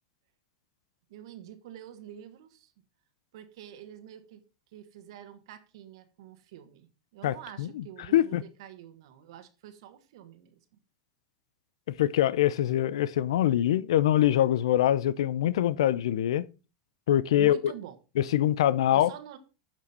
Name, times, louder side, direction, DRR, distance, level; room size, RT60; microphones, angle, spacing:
voice 1, 1.1-2.7 3.3-4.4 4.7-10.6 17.3-18.0 18.9-19.4, right 10 dB, 75° right, 1.5 m, -46 dB
voice 2, 7.2-7.8 8.1-8.4 12.0-16.5 17.1-17.7 18.2-19.1, left 12 dB, 85° left, 0.5 m, -24 dB
9.5 x 6.2 x 4.2 m
supercardioid pair, 130°, 3 cm